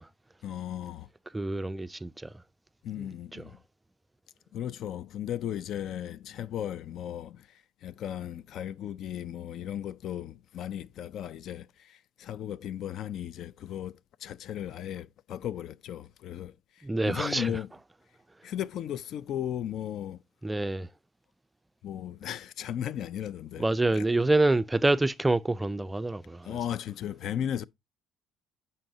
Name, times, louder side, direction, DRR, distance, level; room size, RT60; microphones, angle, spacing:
voice 1, 0.4-1.1 2.8-3.6 4.5-17.7 18.4-20.2 21.8-24.1 26.4-27.6, left 10 dB, 60° left, 0.3 m, -36 dB
voice 2, 1.3-2.3 3.0-3.1 3.3-3.4 16.8-17.5 20.4-20.9 23.6-26.6, right 2 dB, 10° right, 0.3 m, -27 dB
8.8 x 5.4 x 2.7 m
cardioid pair, 95°, 0 cm